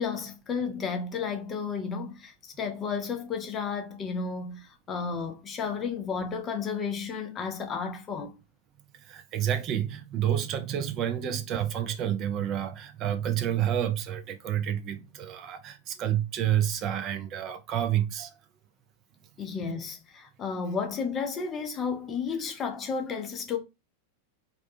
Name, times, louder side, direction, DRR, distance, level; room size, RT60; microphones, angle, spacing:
voice 1, 0.0-8.3 11.2-11.4 19.4-23.6, left 5 dB, 25° left, 0.5 m, -32 dB
voice 2, 9.0-18.3, right 10 dB, 35° right, 0.3 m, -29 dB
2.5 x 2.2 x 2.6 m
figure-of-eight pair, 90°, 0 cm